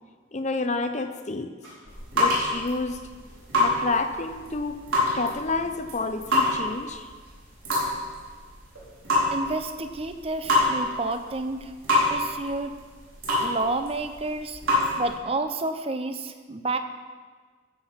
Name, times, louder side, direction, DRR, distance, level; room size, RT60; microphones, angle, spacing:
voice 1, 0.3-1.5 2.1-3.0 3.6-4.8 5.1-7.1, left 3 dB, 35° left, 8 dB, 0.7 m, -29 dB
sound 1, 1.6-15.1, left 1 dB, 80° right, 4.5 m, -27 dB
voice 2, 9.3-11.7 12.1-12.7 13.4-14.6 15.0-16.8, right 2 dB, 30° right, 9 dB, 0.6 m, -30 dB
13.5 x 7.8 x 5.8 m, 1.5 s
head